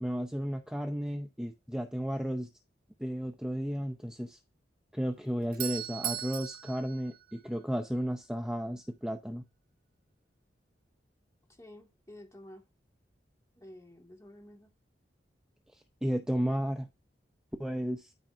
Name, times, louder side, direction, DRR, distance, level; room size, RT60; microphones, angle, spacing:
voice 1, 0.0-2.5 3.0-4.4 4.9-9.4 15.7-16.9 17.6-18.1, equal, 5° right, 0.6 m, -33 dB
Doorbell, 5.2-8.0, right 10 dB, 55° right, 0.6 m, -39 dB
voice 2, 11.5-12.6 13.6-14.7, left 1 dB, 15° left, 2.0 m, -51 dB
13.5 x 4.5 x 2.7 m
head